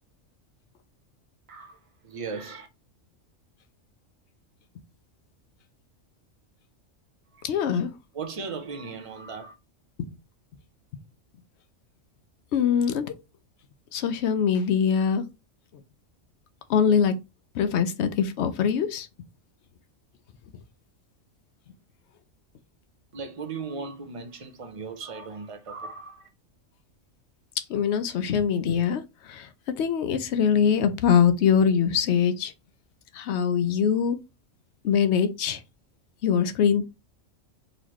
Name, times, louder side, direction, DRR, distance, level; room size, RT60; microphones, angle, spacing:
voice 1, 1.5-2.7 7.3-7.5 8.1-9.5 23.1-26.3, right 4 dB, 45° right, 0.4 m, -37 dB
voice 2, 7.4-7.9 10.0-10.1 12.5-13.1 13.9-15.2 16.7-17.2 17.5-19.1 27.7-29.5 29.8-32.5 33.1-34.2 34.8-35.6 36.2-36.8, left 7 dB, 65° left, 0.8 m, -23 dB
4.0 x 2.9 x 3.0 m
omnidirectional pair, 1.3 m